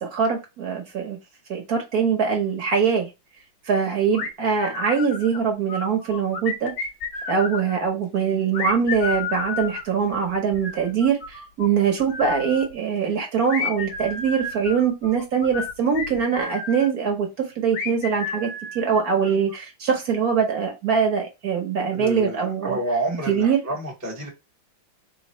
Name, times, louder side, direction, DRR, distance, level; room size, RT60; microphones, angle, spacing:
voice 1, 0.0-1.2 1.5-3.1 3.6-6.7 7.3-18.5 18.7-22.8 23.3-23.6, right 6 dB, 55° right, 1.3 m, -23 dB
sound 1, 4.1-5.4 5.7-7.8 8.5-11.7 12.0-12.7 13.5-16.9 17.7-19.5, left 5 dB, 80° left, 1.7 m, -32 dB
voice 2, 21.9-24.3, right 2 dB, 15° right, 0.7 m, -29 dB
3.8 x 3.6 x 3.1 m
omnidirectional pair, 2.1 m